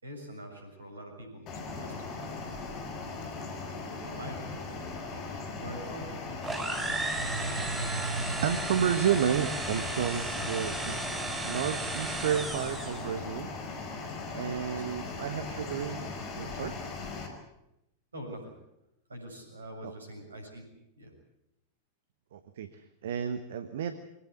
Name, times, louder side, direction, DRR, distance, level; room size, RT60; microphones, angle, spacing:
voice 1, 0.0-2.7 4.0-4.8 5.6-6.2 14.7-15.0 18.1-18.5 19.1-21.1, right 1 dB, 75° right, 4 dB, 6.7 m, -44 dB
sound 1, 1.5-17.3, left 4 dB, 35° left, 5.0 m, -39 dB
sound 2, 6.4-13.1, right 2 dB, 10° right, 3.7 m, -35 dB
voice 2, 7.2-11.0 11.4-13.5 13.8-13.9 14.3-16.8 19.8-19.9 22.3-23.9, right 8 dB, 60° right, 10 dB, 1.3 m, -32 dB
23.5 x 18.5 x 8.2 m, 0.86 s
figure-of-eight pair, 90°, 0 cm